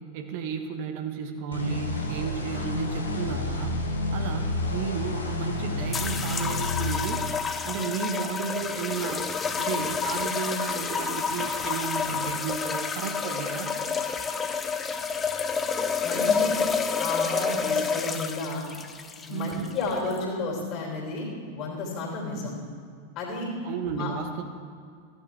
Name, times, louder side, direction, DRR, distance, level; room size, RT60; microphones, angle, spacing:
voice 1, 0.1-3.8 4.1-7.2 7.6-9.3 9.6-13.7 19.3-19.7 23.6-24.4, right 7 dB, 45° right, 5 dB, 1.0 m, -33 dB
sound 1, 1.5-7.0, left 2 dB, 75° left, 1.3 m, -30 dB
sound 2, 5.9-20.2, left 5 dB, 20° left, 0.6 m, -29 dB
voice 2, 16.0-16.5 17.0-18.6 19.3-21.3 21.5-22.5 23.1-23.5 23.8-24.1, left 3 dB, 35° left, -2 dB, 3.0 m, -31 dB
14.5 x 8.1 x 3.5 m, 2.2 s
figure-of-eight pair, 90°, 0 cm